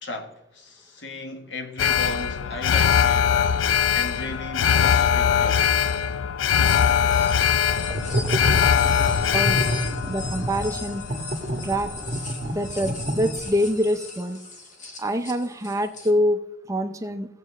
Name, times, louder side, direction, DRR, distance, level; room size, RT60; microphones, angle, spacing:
voice 1, 0.0-5.9, left 2 dB, 65° left, 1.2 m, -36 dB
Alarm, 1.8-12.0 12.4-12.5, left 8 dB, 90° left, 0.4 m, -22 dB
sound 1, 6.7-16.1, left 3 dB, 40° left, 1.4 m, -40 dB
sound 2, 7.7-13.7, right 1 dB, 35° right, 1.2 m, -28 dB
voice 2, 10.1-11.0 11.6-11.9 12.5-14.4 15.0-16.4 16.7-17.3, equal, 15° right, 0.5 m, -25 dB
17.0 x 7.4 x 3.2 m
head